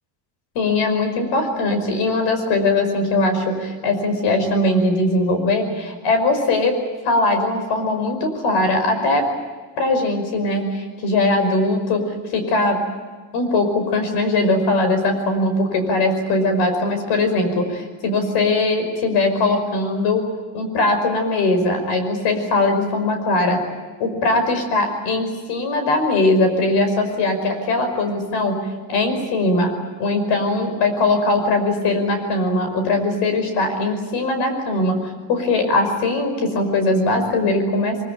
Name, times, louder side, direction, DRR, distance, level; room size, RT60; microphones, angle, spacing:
voice 1, 0.6-6.7 7.0-9.3 9.8-12.8 13.3-20.2 20.5-23.6 24.0-28.6 28.9-29.7 30.0-34.9 35.3-38.0, left 2 dB, 70° left, 7 dB, 5.5 m, -20 dB
23.0 x 23.0 x 9.1 m, 1.4 s
cardioid pair, 175°, 41 cm